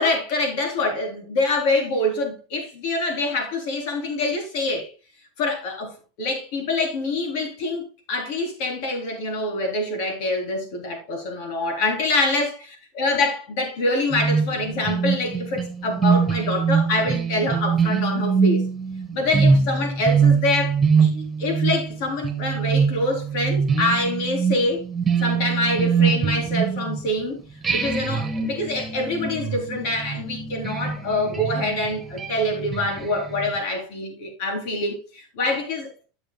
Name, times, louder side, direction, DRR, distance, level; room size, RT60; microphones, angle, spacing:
voice 1, 0.0-4.9 5.4-18.6 19.1-21.1 21.4-24.9 25.2-27.4 27.7-36.1, left 2 dB, 65° left, 3.6 m, -25 dB
sound 1, 14.1-27.2 27.6-33.5, right 5 dB, 15° right, 1.8 m, -23 dB
14.0 x 6.6 x 2.3 m
supercardioid pair, 125°, 0 cm